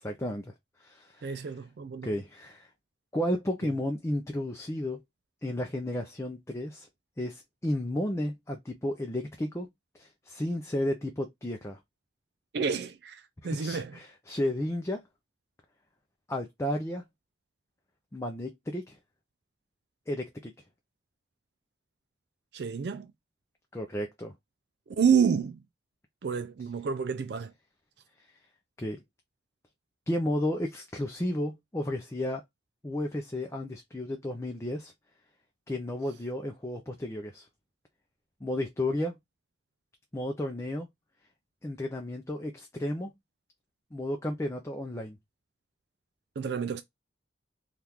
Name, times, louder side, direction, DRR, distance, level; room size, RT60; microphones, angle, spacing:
voice 1, 0.0-0.5 0.8-1.5 2.0-2.7 3.1-5.0 5.4-6.9 7.2-9.7 9.9-11.8 13.4-15.0 16.3-17.0 18.1-19.0 20.1-20.5 23.7-24.3 28.8-29.0 30.1-32.4 32.8-34.9 35.7-37.5 38.4-39.1 40.1-40.9 41.6-43.1 43.9-45.2, left 1 dB, 15° left, 0.5 m, -33 dB
voice 2, 1.2-2.1 12.5-13.9 22.5-23.1 25.0-25.6 26.2-27.5 46.4-46.8, right 6 dB, 60° right, 0.4 m, -29 dB
3.6 x 2.4 x 2.9 m
head